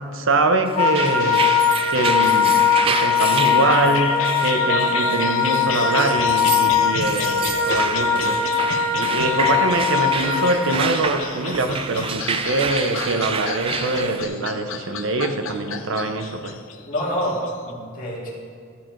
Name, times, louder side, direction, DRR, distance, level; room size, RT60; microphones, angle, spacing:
voice 1, 0.0-1.5 1.9-8.4 8.9-16.6, right 2 dB, 70° right, 7 dB, 0.6 m, -24 dB
Wind instrument woodwind instrument, 0.7-10.6, left 6 dB, 30° left, 1.8 m, -20 dB
sound 1, 0.8-17.7, left 6 dB, 85° left, 0.6 m, -32 dB
sound 2, 0.8-14.3, right 6 dB, 30° right, 0.3 m, -29 dB
voice 2, 16.8-18.3, equal, 45° left, -4 dB, 2.0 m, -27 dB
13.0 x 4.5 x 4.5 m, 2.2 s
head